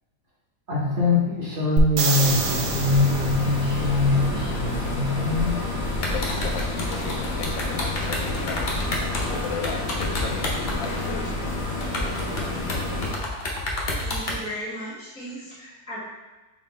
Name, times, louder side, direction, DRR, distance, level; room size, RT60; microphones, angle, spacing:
voice 1, 0.7-5.6, left 3 dB, 65° right, -5 dB, 0.5 m, -23 dB
sound 1, 1.8-3.6 7.4-7.5, right 3 dB, 80° right, 1.3 m, -26 dB
sound 2, 2.2-13.1, left 2 dB, 45° left, 1.0 m, -29 dB
sound 3, 6.0-10.9 11.3-11.4 11.8-14.4, left 2 dB, 70° left, 0.5 m, -30 dB
voice 2, 6.1-11.4, left 6 dB, 85° left, 4 dB, 1.3 m, -36 dB
voice 3, 14.0-16.0, equal, 5° right, -10 dB, 1.2 m, -36 dB
3.6 x 3.6 x 3.7 m, 1.2 s
omnidirectional pair, 2.0 m